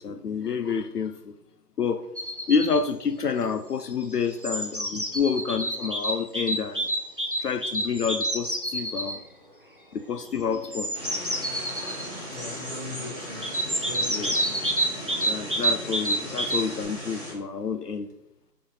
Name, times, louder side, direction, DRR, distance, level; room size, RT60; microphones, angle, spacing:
voice 1, 0.0-1.3 1.8-2.0 2.5-6.9 7.4-9.2 9.9-10.9 14.1-14.3 15.1-18.1, left 6 dB, 70° left, 8 dB, 0.6 m, -28 dB
sound 1, 2.2-2.8 3.9-9.2 10.5-12.1 13.4-16.8, right 1 dB, 35° right, 0.5 m, -28 dB
sound 2, 10.9-17.3, equal, 10° right, 1.3 m, -37 dB
voice 2, 12.3-14.5, left 2 dB, 25° left, -1 dB, 1.0 m, -40 dB
5.2 x 4.5 x 5.4 m, 0.84 s
figure-of-eight pair, 160°, 50 cm